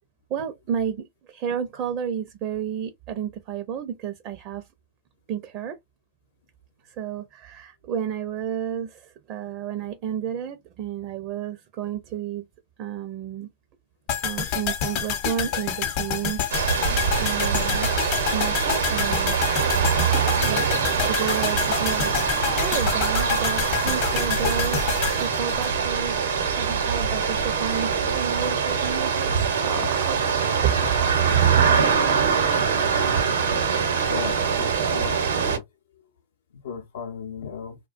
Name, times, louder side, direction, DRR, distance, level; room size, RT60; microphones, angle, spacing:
voice 1, 0.3-4.7 5.3-5.8 6.8-12.4 12.8-13.5 14.2-17.9 18.2-19.4 20.4-20.7 21.1-30.7, right 9 dB, 45° right, 0.5 m, -31 dB
sound 1, 14.1-26.3 26.5-26.6, left 9 dB, 50° left, 0.7 m, -28 dB
sound 2, 16.5-35.6, right 6 dB, 85° right, 0.8 m, -23 dB
voice 2, 34.1-35.6 36.6-37.8, left 6 dB, 80° left, 0.5 m, -35 dB
2.4 x 2.2 x 2.4 m
hypercardioid pair, 115°, 0 cm